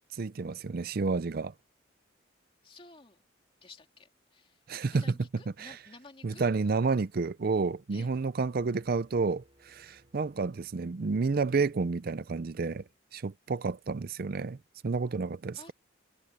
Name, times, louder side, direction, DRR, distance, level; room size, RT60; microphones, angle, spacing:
voice 1, 0.1-1.5 4.7-5.1 5.6-5.8 6.2-12.8 13.1-14.6 14.8-15.7, right 4 dB, 50° right, 0.5 m, -30 dB
voice 2, 2.6-3.2 3.6-4.6 4.9-6.4 7.9-8.1 15.6-15.7, left 3 dB, 30° left, 2.8 m, -53 dB
sound 1, 8.5-11.4, right 1 dB, 30° right, 6.8 m, -66 dB
head